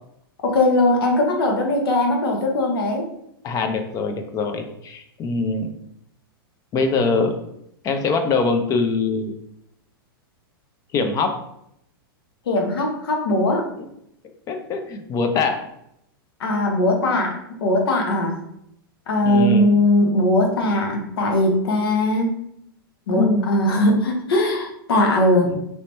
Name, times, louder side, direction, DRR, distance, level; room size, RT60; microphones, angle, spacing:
voice 1, 0.4-3.1 12.5-13.7 16.4-18.4 19.1-22.3 23.1-25.5, left 1 dB, 80° left, 2 dB, 0.9 m, -20 dB
voice 2, 3.4-5.7 6.7-7.4 7.8-9.4 10.9-11.3 13.8-13.9 14.5-15.6 19.2-19.7 23.1-23.6, left 4 dB, 30° left, 6 dB, 0.5 m, -23 dB
3.2 x 2.8 x 3.1 m, 0.76 s
hypercardioid pair, 120°, 13 cm